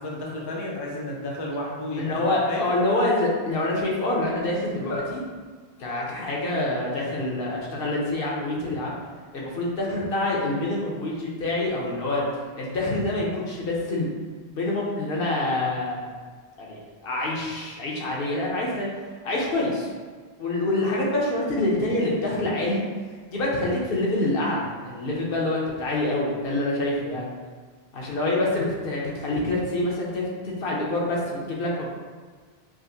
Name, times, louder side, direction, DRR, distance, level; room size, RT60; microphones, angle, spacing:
voice 1, 0.0-2.7, left 1 dB, 35° left, -3 dB, 0.4 m, -32 dB
voice 2, 2.0-5.2 5.8-8.9 9.3-12.2 12.6-14.1 14.5-16.1 16.6-16.8 17.0-18.9 19.2-19.9 20.4-22.8 23.3-27.3 27.9-32.0, left 2 dB, 65° left, -3 dB, 0.9 m, -26 dB
4.9 x 2.0 x 2.6 m, 1.5 s
omnidirectional pair, 1.1 m